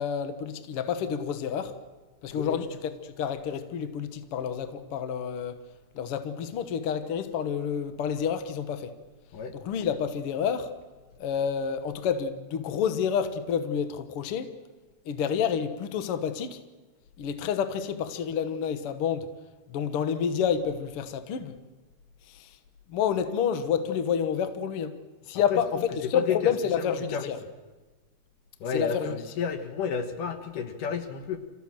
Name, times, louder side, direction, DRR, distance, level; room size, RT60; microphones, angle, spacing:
voice 1, 0.0-1.7 2.2-5.6 5.9-8.9 9.5-10.7 11.2-14.5 15.1-16.6 17.2-19.3 19.7-21.5 22.3-22.6 22.9-25.0 25.3-27.4 28.7-29.2, left 7 dB, 55° left, 1.8 m, -29 dB
voice 2, 26.1-27.3 28.6-31.4, left 6 dB, 80° left, 3.1 m, -31 dB
29.5 x 15.0 x 7.6 m
omnidirectional pair, 3.7 m